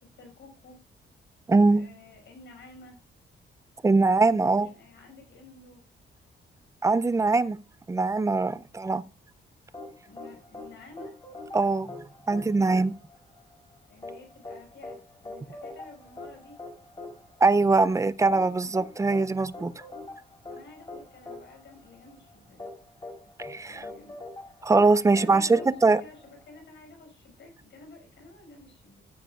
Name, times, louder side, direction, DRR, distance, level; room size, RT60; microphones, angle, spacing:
voice 1, 0.2-0.8 1.7-3.0 4.3-5.8 10.0-11.1 13.9-16.6 20.5-22.6 23.7-24.2 25.0-29.1, left 3 dB, 70° left, 5.3 m, -50 dB
voice 2, 1.5-1.8 3.8-4.7 6.8-7.6 7.9-9.0 11.5-11.9 12.3-12.9 17.4-19.8 23.4-23.8 24.6-26.0, right 3 dB, 15° right, 0.4 m, -22 dB
sound 1, 9.7-26.6, left 2 dB, 20° left, 3.3 m, -44 dB
14.0 x 9.2 x 2.3 m
wide cardioid pair, 145°, 20 cm